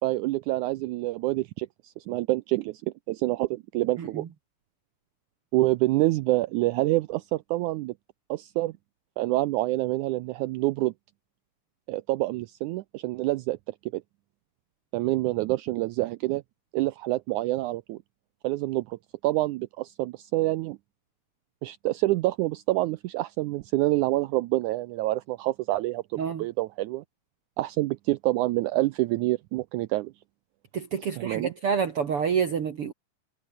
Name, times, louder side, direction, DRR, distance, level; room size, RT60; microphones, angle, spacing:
voice 1, 0.0-4.3 5.5-7.9 8.3-8.7 9.2-10.9 11.9-13.6 13.9-14.0 14.9-16.4 16.7-18.0 18.4-20.8 21.6-27.0 27.6-30.1 31.2-31.5, right 18 dB, 85° right, 1.8 m, -27 dB
voice 2, 30.7-32.9, right 6 dB, 50° right, 2.1 m, -27 dB
omnidirectional pair, 4.0 m